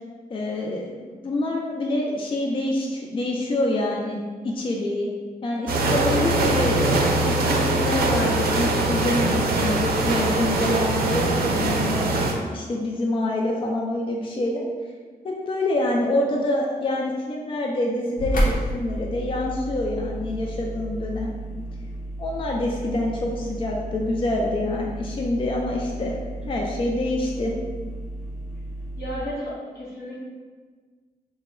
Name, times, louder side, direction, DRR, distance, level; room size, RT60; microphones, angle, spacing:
voice 1, 0.3-4.2 4.4-5.1 5.4-12.1 12.5-14.7 15.2-21.3 22.2-26.2 26.5-27.5, left 1 dB, 35° left, -1 dB, 0.4 m, -26 dB
sound 1, 5.7-12.3, right 2 dB, 75° right, 0.5 m, -22 dB
sound 2, 18.2-29.2, right 1 dB, 60° left, 0.9 m, -32 dB
voice 2, 29.0-30.2, equal, 85° left, -6 dB, 1.3 m, -33 dB
3.2 x 2.2 x 4.2 m, 1.5 s
wide cardioid pair, 150°, 16 cm